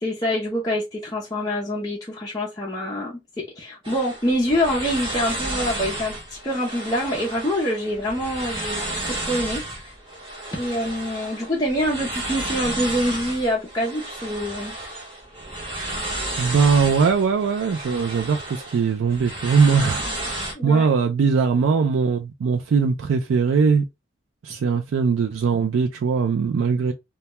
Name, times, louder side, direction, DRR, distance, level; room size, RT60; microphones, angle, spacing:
voice 1, 0.0-6.2 6.4-9.9 10.6-14.7 20.5-20.9, equal, 20° left, 0.5 m, -25 dB
sound 1, 3.8-20.5, right 1 dB, 25° right, 0.8 m, -32 dB
voice 2, 16.4-20.4 20.6-23.8 24.4-26.9, right 5 dB, 85° right, 0.4 m, -20 dB
2.2 x 2.1 x 2.8 m
head